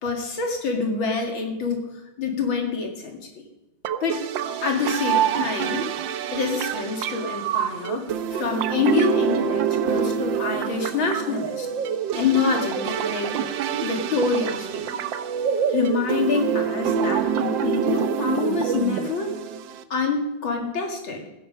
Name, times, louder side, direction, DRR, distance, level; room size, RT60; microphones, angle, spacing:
voice 1, 0.0-1.9 2.2-3.4 4.0-4.3 4.6-5.8 6.3-8.0 8.3-11.7 12.1-15.0 15.7-19.3 19.9-21.2, left 4 dB, 70° left, 2 dB, 2.9 m, -26 dB
sound 1, 3.8-19.8, right 8 dB, 70° right, 1.4 m, -26 dB
16.5 x 10.5 x 5.2 m, 0.94 s
omnidirectional pair, 2.3 m